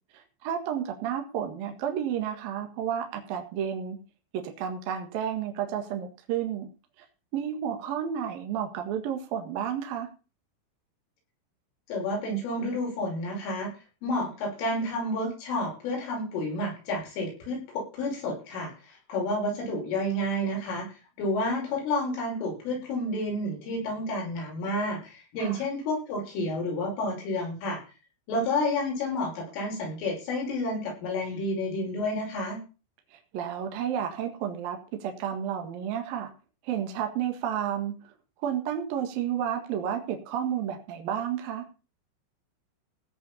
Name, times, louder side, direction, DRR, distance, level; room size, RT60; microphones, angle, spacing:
voice 1, 0.1-4.0 4.3-6.7 7.3-10.1 25.4-25.6 33.1-36.3 36.6-38.1 38.4-41.6, right 9 dB, 60° right, 4 dB, 3.0 m, -31 dB
voice 2, 11.9-13.7 14.0-27.8 28.3-32.6, left 1 dB, 80° left, 0 dB, 8.5 m, -30 dB
16.5 x 5.8 x 7.0 m, 0.34 s
omnidirectional pair, 5.6 m